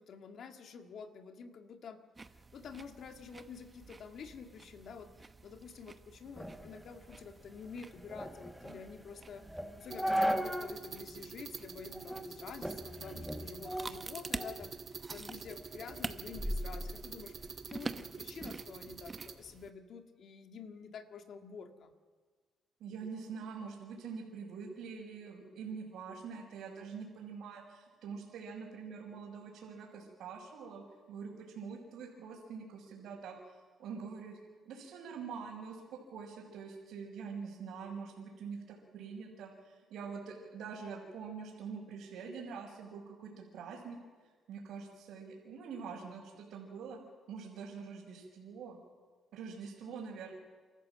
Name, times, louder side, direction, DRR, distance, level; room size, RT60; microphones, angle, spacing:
voice 1, 0.0-14.8 15.1-21.9, left 6 dB, 65° left, 6 dB, 1.9 m, -49 dB
sound 1, 2.2-19.7, right 3 dB, 25° right, 0.9 m, -49 dB
sound 2, 6.4-10.8 11.2-11.3 11.9-12.3 12.6-14.7 15.1-17.5, equal, ahead, 1.4 m, -38 dB
sound 3, 9.9-19.3, right 5 dB, 50° right, 1.9 m, -47 dB
voice 2, 22.8-33.4 33.8-34.4 34.6-44.0 44.5-47.0 47.3-48.8 49.3-50.3, right 5 dB, 80° right, -4 dB, 4.9 m, -45 dB
28.5 x 14.0 x 7.6 m, 1.5 s
cardioid pair, 90°, 0 cm